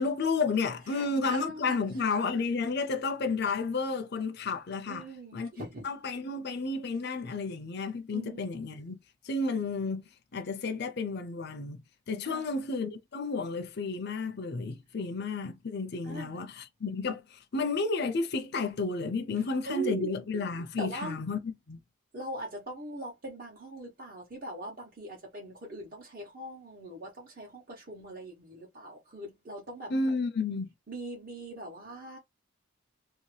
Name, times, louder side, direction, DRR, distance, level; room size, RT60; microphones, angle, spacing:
voice 1, 0.0-5.1 5.3-9.0 9.2-10.0 10.3-11.8 12.1-21.8 29.9-30.7, left 4 dB, 55° left, 0.5 m, -32 dB
voice 2, 0.9-1.8 4.9-5.8 8.1-8.5 12.2-12.4 16.0-16.5 19.6-20.1 20.8-21.2 22.1-29.9 30.9-32.2, right 2 dB, 45° right, 1.1 m, -41 dB
2.9 x 2.8 x 3.2 m
head